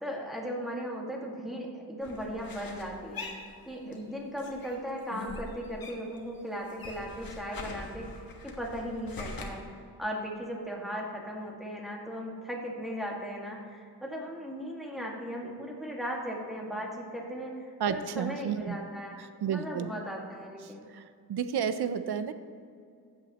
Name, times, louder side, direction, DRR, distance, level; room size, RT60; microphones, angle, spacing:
voice 1, 0.0-3.3 3.7-8.1 8.4-17.5 17.9-19.2 19.5-20.9, equal, ahead, -2 dB, 1.8 m, -37 dB
sound 1, 2.0-4.1 4.4-6.2 6.5-9.4, left 3 dB, 60° left, 1.4 m, -43 dB
voice 2, 17.8-18.8 19.2-19.9 20.9-21.0 21.3-22.3, right 7 dB, 80° right, 11 dB, 0.7 m, -31 dB
15.0 x 8.2 x 3.0 m, 2.4 s
wide cardioid pair, 110°, 39 cm